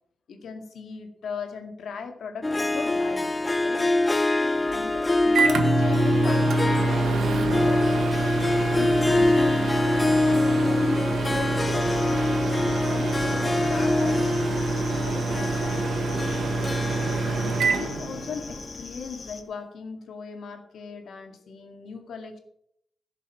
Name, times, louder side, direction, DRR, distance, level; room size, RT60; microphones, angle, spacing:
voice 1, 0.3-3.9 4.7-8.1 8.4-9.9 10.2-14.4 15.0-16.2 17.0-22.4, left 5 dB, 75° left, 5 dB, 2.2 m, -39 dB
Harp, 2.4-18.9, left 2 dB, 15° left, 0.4 m, -25 dB
Microwave oven, 4.7-18.7, right 3 dB, 75° right, 1.5 m, -27 dB
sound 1, 11.6-19.4, left 4 dB, 40° left, 1.2 m, -43 dB
16.0 x 6.9 x 6.0 m, 0.70 s
wide cardioid pair, 180°, 0 cm